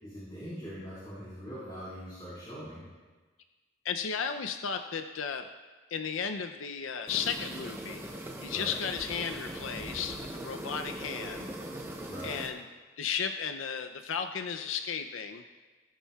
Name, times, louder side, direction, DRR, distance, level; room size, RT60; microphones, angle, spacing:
voice 1, 0.0-2.9 8.5-8.7 12.0-12.4, equal, 25° left, -11 dB, 4.0 m, -42 dB
voice 2, 3.8-5.5 5.9-8.0 8.4-11.5 12.2-12.6 13.0-15.4, left 6 dB, 75° left, 7 dB, 0.5 m, -34 dB
sound 1, 7.1-12.5, right 1 dB, 10° right, 0.8 m, -40 dB
18.5 x 10.0 x 2.3 m, 1.3 s
head